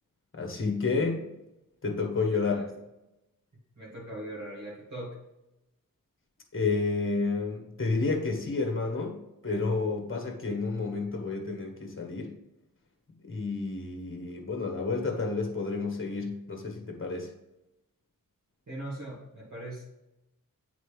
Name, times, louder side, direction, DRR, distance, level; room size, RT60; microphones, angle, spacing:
voice 1, 0.3-1.2 1.8-2.6 6.5-9.2 9.4-12.3 13.2-17.3, left 4 dB, 35° left, 3 dB, 1.4 m, -30 dB
voice 2, 2.3-2.7 3.8-5.2 18.7-19.8, right 1 dB, 55° right, -7 dB, 2.1 m, -40 dB
8.0 x 4.1 x 3.3 m, 0.92 s
wide cardioid pair, 70°, 34 cm